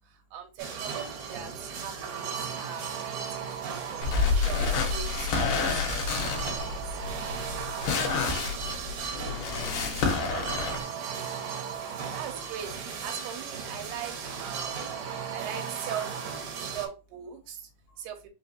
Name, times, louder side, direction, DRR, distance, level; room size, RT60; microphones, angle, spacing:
voice 1, 0.3-4.1 4.3-5.8 6.1-6.3 12.1-12.7 13.0-14.1 14.4-14.9 15.3-16.1 16.7-17.6 18.0-18.2, right 9 dB, 90° right, 2.8 m, -40 dB
sound 1, 0.6-16.9, right 6 dB, 70° right, 1.8 m, -36 dB
sound 2, 4.0-10.8, left 4 dB, 65° left, 2.3 m, -28 dB
voice 2, 7.9-10.1 17.9-18.0, left 6 dB, 85° left, 2.0 m, -44 dB
5.9 x 2.5 x 2.7 m
omnidirectional pair, 4.5 m